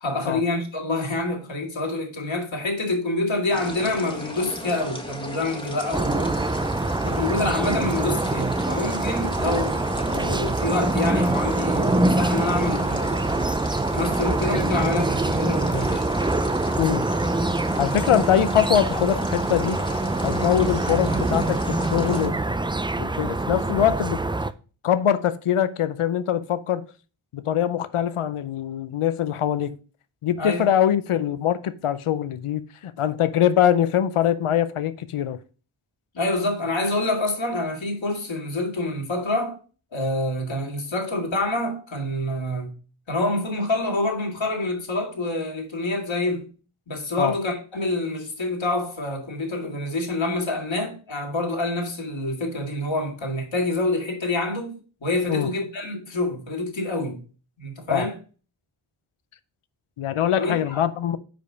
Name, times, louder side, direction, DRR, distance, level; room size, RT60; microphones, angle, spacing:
voice 1, 0.0-6.4 7.0-13.3 13.9-16.1 30.4-30.6 36.1-39.6 39.9-42.7 43.1-46.5 46.9-57.2 57.6-58.2 60.4-60.8, left 2 dB, 65° left, 2.1 m, -27 dB
sound 1, 3.5-22.3, left 1 dB, 10° left, 1.5 m, -36 dB
sound 2, 5.9-24.5, right 2 dB, 10° right, 0.3 m, -24 dB
voice 2, 17.8-19.8 20.2-22.4 23.0-24.2 24.8-26.9 27.3-29.8 30.2-35.4 47.2-47.3 55.3-55.5 57.9-58.1 60.0-61.2, left 10 dB, 85° left, 0.6 m, -23 dB
5.2 x 4.8 x 6.2 m
wide cardioid pair, 50°, 49 cm